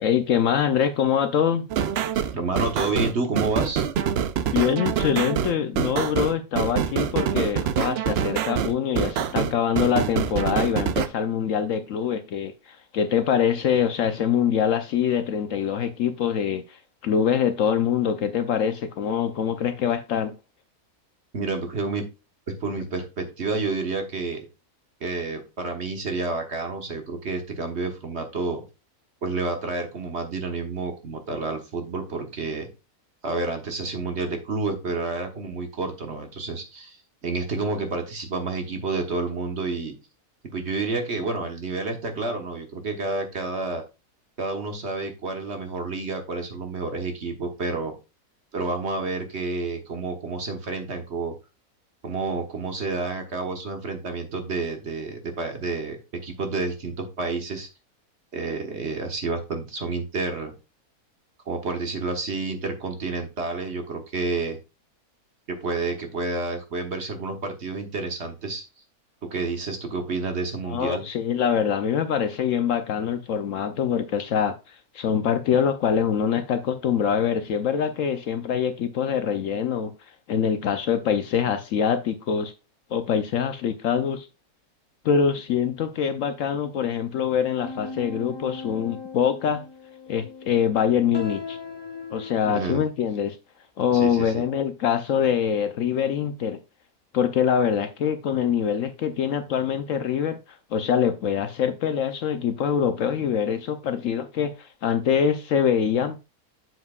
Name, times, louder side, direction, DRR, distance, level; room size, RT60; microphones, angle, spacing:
voice 1, 0.0-1.7 4.5-20.3 70.7-79.9 80.3-82.5 82.9-84.3 85.0-89.6 90.1-91.6 92.1-93.4 93.8-96.6 97.1-100.4 100.7-106.2, left 8 dB, 65° left, 0.9 m, -24 dB
sound 1, 1.7-11.1, right 8 dB, 65° right, 0.6 m, -25 dB
voice 2, 2.3-3.8 21.3-22.0 22.5-24.4 25.0-28.6 29.2-32.7 33.2-39.9 40.4-43.8 44.4-47.9 48.5-51.4 52.0-57.7 58.3-60.5 61.5-64.6 65.5-68.6 69.2-71.0 92.5-92.8 93.9-94.5, right 3 dB, 50° right, 1.3 m, -29 dB
sound 2, 87.6-92.6, left 4 dB, 25° left, 0.6 m, -38 dB
7.8 x 7.4 x 2.3 m
omnidirectional pair, 1.6 m